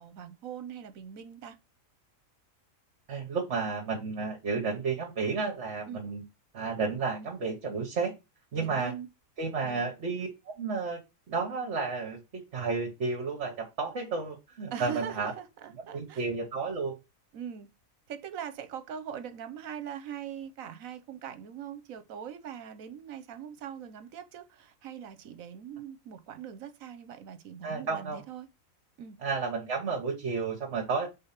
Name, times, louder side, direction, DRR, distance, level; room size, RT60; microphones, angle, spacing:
voice 1, 0.0-1.6 5.9-6.1 8.6-9.1 9.6-9.8 14.7-16.2 17.3-17.7 18.1-28.5 29.0-29.2, right 8 dB, 80° right, 1.2 m, -41 dB
voice 2, 3.1-6.2 6.5-8.1 8.5-8.9 9.4-11.0 11.3-15.3 15.9-17.0 27.6-28.2 29.2-31.1, right 4 dB, 55° right, 1.5 m, -32 dB
5.3 x 3.8 x 5.7 m
omnidirectional pair, 1.4 m